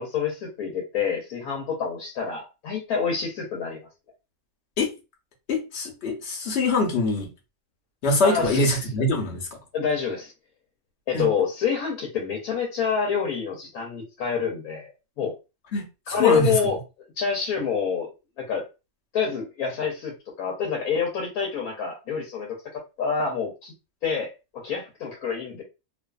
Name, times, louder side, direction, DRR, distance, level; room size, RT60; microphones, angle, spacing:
voice 1, 0.0-3.9 8.2-8.7 9.7-10.3 11.1-14.9 15.2-15.3 16.1-16.8 17.2-18.6 19.1-23.7 24.0-25.6, left 6 dB, 90° left, 1.2 m, -27 dB
voice 2, 5.5-7.3 8.0-9.5 11.1-11.3 15.7-16.5, left 2 dB, 55° left, 1.0 m, -24 dB
2.6 x 2.4 x 2.3 m
omnidirectional pair, 1.5 m